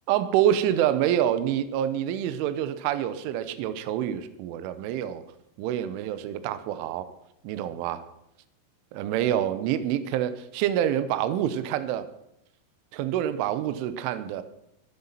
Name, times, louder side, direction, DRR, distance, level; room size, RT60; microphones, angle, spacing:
voice 1, 0.1-5.2 5.6-7.1 7.4-8.0 8.9-12.1 12.9-14.4, right 11 dB, 80° right, 12 dB, 3.3 m, -27 dB
22.5 x 8.1 x 5.7 m, 0.80 s
omnidirectional pair, 5.8 m